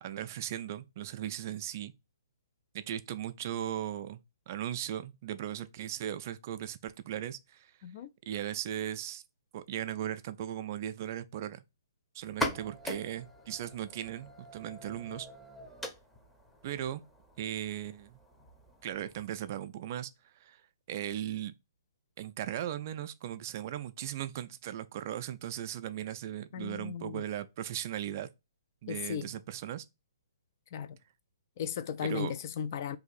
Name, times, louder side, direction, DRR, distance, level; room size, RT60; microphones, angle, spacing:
voice 1, 0.0-1.9 2.7-7.7 8.3-9.2 9.5-11.6 12.1-15.3 16.6-17.0 17.4-18.2 18.8-20.1 20.4-20.6 20.9-21.5 22.2-28.3 28.8-29.9 32.0-32.3, right 11 dB, 45° right, 0.3 m, -37 dB
sound 1, 12.2-19.7, equal, 5° left, 0.6 m, -42 dB
voice 2, 26.5-27.2 28.9-29.3 30.7-31.0 31.6-33.0, left 8 dB, 45° left, 0.3 m, -36 dB
2.7 x 2.5 x 3.9 m
hypercardioid pair, 140°, 2 cm